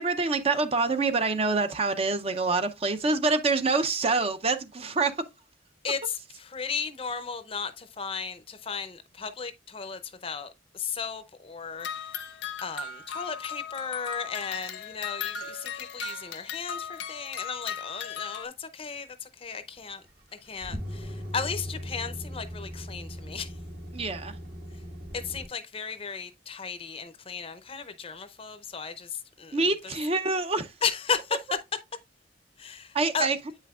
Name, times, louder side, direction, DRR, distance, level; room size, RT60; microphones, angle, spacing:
voice 1, 0.0-5.3 23.9-24.3 29.5-30.7 32.9-33.4, right 3 dB, 30° right, 0.6 m, -26 dB
voice 2, 5.8-12.1 12.6-20.0 20.4-23.5 25.1-29.9 30.8-31.6 32.6-33.3, left 6 dB, 30° left, 0.6 m, -35 dB
sound 1, 11.8-18.4, left 7 dB, 70° left, 0.8 m, -37 dB
sound 2, 19.9-25.4, equal, 60° right, 1.5 m, -39 dB
8.3 x 5.7 x 2.4 m
head